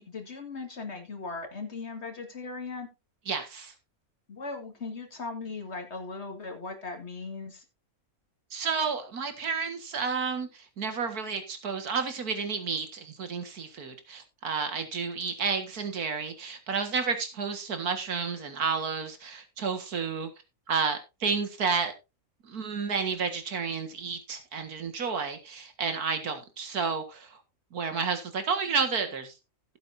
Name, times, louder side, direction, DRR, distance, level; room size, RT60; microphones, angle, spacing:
voice 1, 0.0-2.9 4.3-7.6, left 4 dB, 45° left, 2.2 m, -38 dB
voice 2, 3.3-3.7 8.5-20.3 20.7-21.9 22.4-27.4 27.7-29.3, right 5 dB, 90° right, 2.2 m, -31 dB
15.5 x 8.1 x 2.6 m
omnidirectional pair, 1.5 m